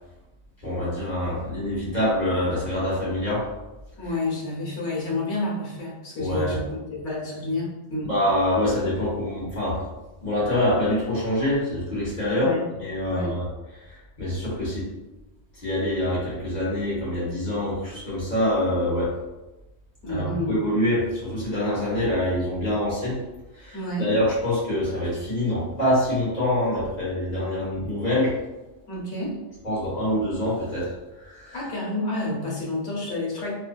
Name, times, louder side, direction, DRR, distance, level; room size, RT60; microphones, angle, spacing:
voice 1, 0.6-3.4 6.2-6.5 8.0-9.9 10.2-12.5 12.8-13.5 13.9-14.9 15.5-19.1 20.1-23.2 23.5-28.3 29.6-30.9 31.2-31.6, left 1 dB, 40° left, -8 dB, 1.1 m, -25 dB
voice 2, 4.0-6.6 6.9-8.1 12.2-12.6 13.1-13.4 20.0-20.6 23.7-24.1 28.9-29.4 31.5-33.6, left 2 dB, 75° left, -4 dB, 1.2 m, -29 dB
2.6 x 2.4 x 2.2 m, 1.0 s
omnidirectional pair, 1.2 m